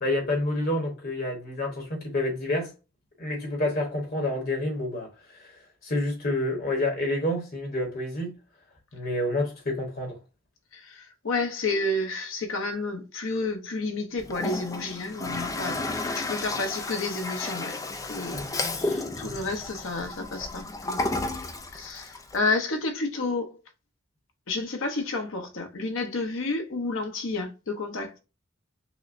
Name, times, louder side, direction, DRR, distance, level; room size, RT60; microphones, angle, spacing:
voice 1, 0.0-2.7 3.2-8.3 8.9-10.2 18.3-18.5, left 1 dB, 50° left, 1.1 m, -29 dB
voice 2, 10.7-15.8 16.1-17.8 18.0-18.4 18.8-21.0 21.7-23.6 24.5-28.1, left 3 dB, 90° left, 0.8 m, -30 dB
Toilet flush, 14.2-22.4, left 2 dB, 15° left, 0.3 m, -32 dB
6.0 x 2.1 x 2.5 m
head